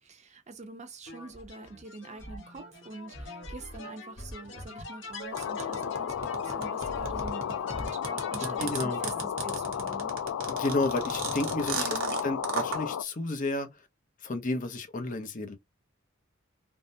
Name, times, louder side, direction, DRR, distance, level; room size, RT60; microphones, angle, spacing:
voice 1, 0.0-8.0 8.3-10.1 11.7-12.2, right 3 dB, 35° right, 0.6 m, -45 dB
sound 1, 1.1-9.3, left 1 dB, 65° left, 0.9 m, -43 dB
sound 2, 5.3-13.0, left 8 dB, 90° left, 0.3 m, -33 dB
sound 3, 5.4-12.8, right 5 dB, 85° right, 0.9 m, -34 dB
voice 2, 8.4-9.0 10.5-11.8 12.2-13.7 14.2-15.6, left 2 dB, 40° left, 0.6 m, -31 dB
3.5 x 2.0 x 2.6 m
head